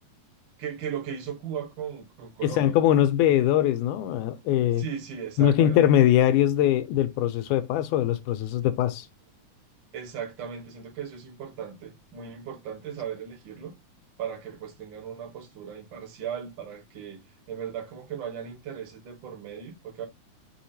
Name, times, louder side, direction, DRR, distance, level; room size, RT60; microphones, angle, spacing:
voice 1, 0.6-2.8 3.4-3.5 4.1-5.8 9.9-13.8 14.2-20.1, right 8 dB, 55° right, 1.4 m, -37 dB
voice 2, 2.4-4.8 5.4-9.1, left 11 dB, 85° left, 2.1 m, -22 dB
5.6 x 3.0 x 2.7 m
omnidirectional pair, 3.5 m